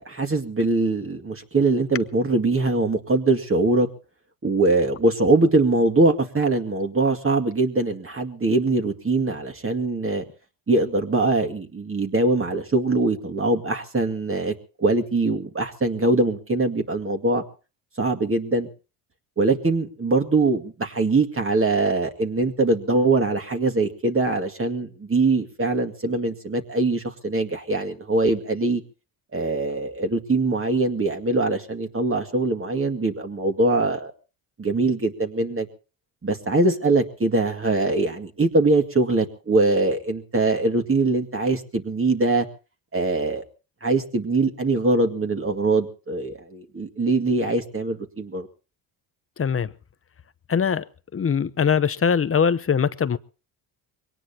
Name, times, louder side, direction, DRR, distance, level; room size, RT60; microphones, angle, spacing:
voice 1, 0.0-3.9 4.4-10.2 10.7-17.4 18.0-18.7 19.4-28.8 29.3-34.1 34.6-35.7 36.2-42.5 42.9-43.4 43.8-48.5, right 2 dB, 25° right, 2.1 m, -22 dB
voice 2, 49.4-49.7 50.5-50.8 51.1-53.2, left 6 dB, 25° left, 0.8 m, -21 dB
23.0 x 18.0 x 2.9 m
supercardioid pair, 80°, 50 cm